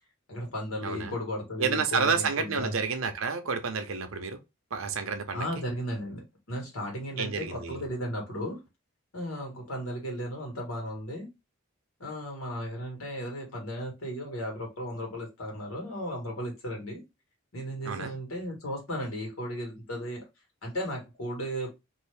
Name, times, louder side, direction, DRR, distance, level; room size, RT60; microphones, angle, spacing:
voice 1, 0.3-2.7 5.3-8.6 9.1-11.3 12.0-17.0 17.5-20.2 20.6-21.7, equal, 85° left, 1.5 m, -35 dB
voice 2, 0.8-1.1 1.6-4.4 4.7-5.5 7.2-7.8 17.8-18.1, right 5 dB, 80° right, 0.6 m, -30 dB
2.7 x 2.5 x 3.2 m
head